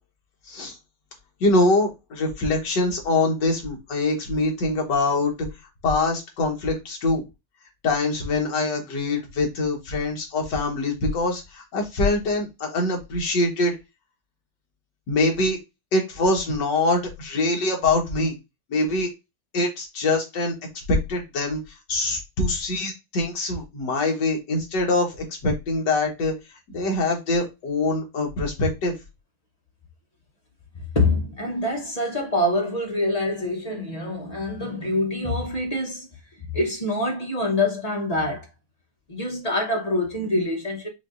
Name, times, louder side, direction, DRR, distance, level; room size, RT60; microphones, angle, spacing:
voice 1, 1.4-5.3 5.8-7.2 7.8-13.8 15.1-15.6 15.9-18.4 18.7-19.1 19.5-20.5 20.9-21.6 21.9-26.3 26.7-29.0, left 2 dB, 65° left, 1.9 m, -24 dB
voice 2, 30.9-36.1 36.4-38.5 39.1-40.9, left 2 dB, 40° left, 0.5 m, -25 dB
5.8 x 2.7 x 2.5 m
omnidirectional pair, 2.1 m